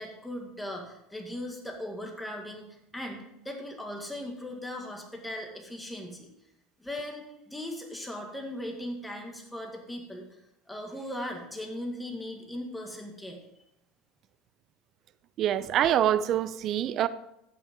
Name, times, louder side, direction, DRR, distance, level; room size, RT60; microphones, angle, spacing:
voice 1, 0.0-6.3 6.8-10.3 10.7-13.4, left 1 dB, 5° left, 1.8 m, -38 dB
voice 2, 15.4-17.1, right 11 dB, 45° right, 0.6 m, -25 dB
14.5 x 5.9 x 3.7 m
supercardioid pair, 115°, 0 cm